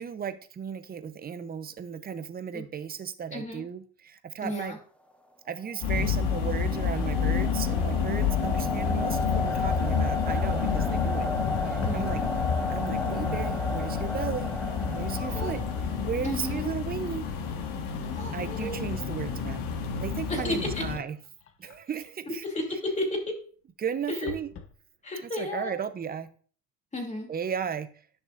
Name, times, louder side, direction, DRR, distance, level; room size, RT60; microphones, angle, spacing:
voice 1, 0.0-4.8 5.5-11.3 11.6-12.2 12.7-14.5 14.9-15.6 16.0-17.2 18.3-19.6 20.0-21.2 21.6-22.4 23.8-24.5 25.2-26.3 27.3-27.9, right 7 dB, 25° right, 11 dB, 0.7 m, -35 dB
voice 2, 3.3-3.6 4.4-4.8 9.1-9.4 11.9-12.2 15.2-15.7 16.2-16.7 18.1-18.8 20.3-20.8 22.4-23.4 24.1-24.3 25.0-25.7 26.9-27.3, left 1 dB, 20° left, 1 dB, 2.8 m, -33 dB
sound 1, 5.6-16.4, left 2 dB, 5° left, 1.0 m, -34 dB
sound 2, 5.8-21.0, left 6 dB, 65° left, 1.5 m, -29 dB
sound 3, 11.5-12.4 12.7-13.2 13.9-14.1 14.5-18.1 18.5-18.6 19.3-22.0 24.3-24.8 25.5-25.6 25.8-25.9, left 6 dB, 40° left, 1.0 m, -45 dB
10.5 x 6.0 x 2.5 m, 0.42 s
supercardioid pair, 100°, 36 cm